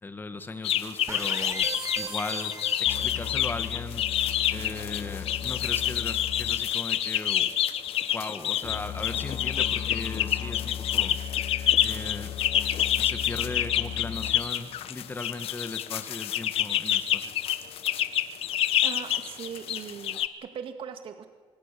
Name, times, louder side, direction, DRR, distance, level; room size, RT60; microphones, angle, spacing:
voice 1, 0.0-1.7 2.0-4.1 4.5-7.5 8.0-11.2 11.8-12.4 13.0-17.3, left 3 dB, 20° left, 9 dB, 2.0 m, -38 dB
sound 1, 0.6-20.3, left 11 dB, 65° left, 1.4 m, -28 dB
sound 2, 1.1-3.5, right 4 dB, 30° right, 3.0 m, -38 dB
sound 3, 2.9-7.8 8.6-14.6, left 9 dB, 50° left, 1.6 m, -37 dB
voice 2, 18.8-21.3, right 8 dB, 60° right, 6 dB, 2.1 m, -39 dB
25.5 x 20.0 x 7.1 m, 1.5 s
cardioid pair, 95°, 11 cm